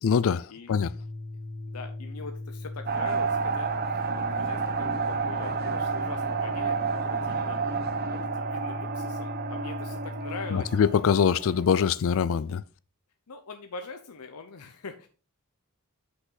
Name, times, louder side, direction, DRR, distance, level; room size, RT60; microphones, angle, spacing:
voice 1, 0.0-0.9 10.5-12.6, left 7 dB, 65° left, 0.4 m, -23 dB
Organ, 0.7-11.0, left 2 dB, 40° left, 1.2 m, -39 dB
voice 2, 1.7-7.7 8.0-10.7 13.3-15.1, left 4 dB, 85° left, 0.8 m, -42 dB
sound 1, 2.9-11.8, right 5 dB, 45° right, 0.9 m, -30 dB
8.0 x 6.2 x 3.9 m
head